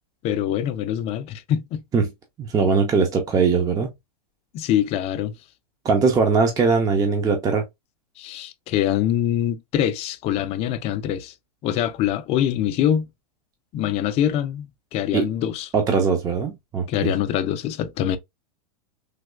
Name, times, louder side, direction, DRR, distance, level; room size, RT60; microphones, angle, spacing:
voice 1, 0.2-1.8 4.5-5.3 8.2-11.3 11.6-13.1 13.7-15.7 16.9-18.2, left 10 dB, 30° left, 0.5 m, -24 dB
voice 2, 2.4-3.9 5.8-7.6 15.1-15.3 15.7-17.1, right 5 dB, 20° right, 0.6 m, -20 dB
3.3 x 2.9 x 2.3 m
hypercardioid pair, 110°, 20 cm